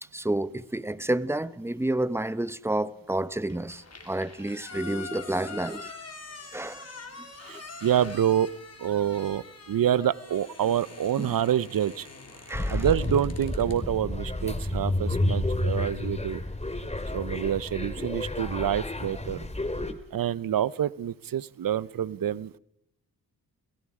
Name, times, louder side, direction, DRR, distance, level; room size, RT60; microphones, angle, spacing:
voice 1, 0.1-5.9 6.5-6.9 7.5-7.6 11.2-11.3 12.5-12.8 18.0-18.1 19.8-20.0, right 1 dB, 5° right, 0.9 m, -30 dB
sound 1, 3.5-13.8, left 4 dB, 40° left, 3.9 m, -45 dB
voice 2, 7.4-8.5 8.8-12.1 12.7-16.4 17.1-19.5 20.1-22.6, right 10 dB, 60° right, 0.8 m, -27 dB
sound 2, 12.5-19.9, left 1 dB, 15° left, 2.3 m, -30 dB
29.5 x 17.5 x 4.9 m
cardioid pair, 55°, 39 cm